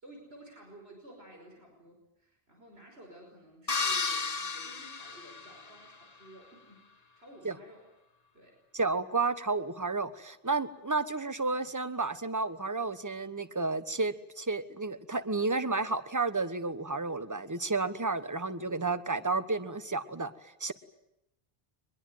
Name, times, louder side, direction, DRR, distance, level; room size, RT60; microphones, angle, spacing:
voice 1, 0.0-7.9 8.3-8.6, right 1 dB, 80° right, 2 dB, 5.7 m, -53 dB
sound 1, 3.7-5.9, left 4 dB, 40° left, 1.4 m, -33 dB
voice 2, 8.7-20.7, right 3 dB, 20° right, 13 dB, 1.2 m, -31 dB
23.5 x 21.5 x 9.4 m, 0.85 s
omnidirectional pair, 1.0 m